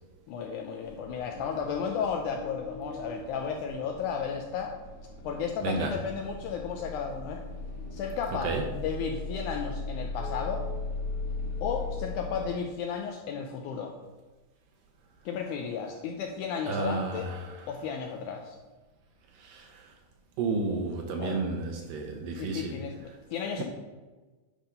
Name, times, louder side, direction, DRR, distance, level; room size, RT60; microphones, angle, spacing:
voice 1, 0.3-4.7 5.2-7.4 7.9-10.7 11.6-14.0 15.3-17.3 17.7-18.6 21.2-21.5 22.4-23.6, left 6 dB, 85° left, 3 dB, 1.8 m, -34 dB
sound 1, 0.8-12.5, left 3 dB, 55° left, 1.8 m, -38 dB
voice 2, 5.6-5.9 8.4-8.6 16.7-17.6 19.4-19.9 20.4-22.8 23.6-23.7, right 4 dB, 80° right, 2 dB, 2.3 m, -32 dB
10.0 x 3.6 x 5.5 m, 1.2 s
omnidirectional pair, 4.1 m